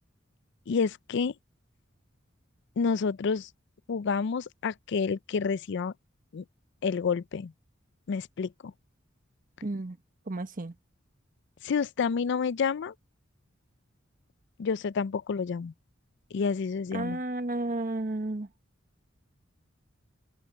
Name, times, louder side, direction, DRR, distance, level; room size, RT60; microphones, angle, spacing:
voice 1, 0.7-1.3 2.8-3.5 3.9-5.9 6.3-6.4 6.8-7.5 8.1-8.7 11.6-12.9 14.6-15.7 16.3-17.2, left 5 dB, 60° left, 0.4 m, -29 dB
voice 2, 9.6-10.0 10.3-10.7 16.9-18.5, right 2 dB, 45° right, 1.1 m, -32 dB
open air
head